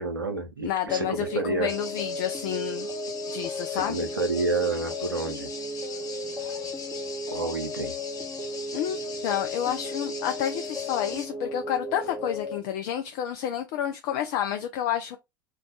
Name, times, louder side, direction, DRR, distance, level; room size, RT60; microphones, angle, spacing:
voice 1, 0.0-1.7 3.7-5.5 7.3-8.0, right 3 dB, 85° right, 0.6 m, -29 dB
voice 2, 0.6-2.9 3.3-4.1 8.7-15.2, left 10 dB, 50° left, 0.3 m, -30 dB
sound 1, 0.9-12.6, left 1 dB, 15° right, 1.0 m, -35 dB
sound 2, 1.7-11.3, left 5 dB, 35° left, 1.0 m, -41 dB
2.3 x 2.3 x 3.7 m
figure-of-eight pair, 75°, 11 cm